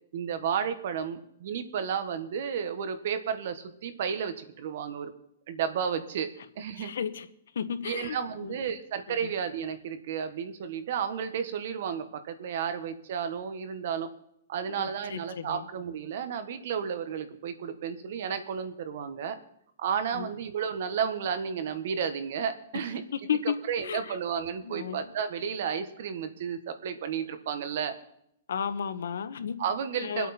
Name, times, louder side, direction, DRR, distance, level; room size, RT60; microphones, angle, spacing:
voice 1, 0.1-5.1 5.5-6.3 6.6-6.9 7.8-14.1 14.5-19.4 19.8-23.0 23.7-27.9 29.6-30.3, right 7 dB, 50° right, 10 dB, 1.3 m, -32 dB
voice 2, 6.8-7.3 7.5-8.6 14.7-15.6 20.1-20.3 23.2-23.5 23.8-24.1 24.6-25.0 28.5-29.6 30.0-30.3, left 7 dB, 80° left, 11 dB, 1.2 m, -33 dB
24.0 x 8.4 x 4.3 m, 0.74 s
hypercardioid pair, 175°, 0 cm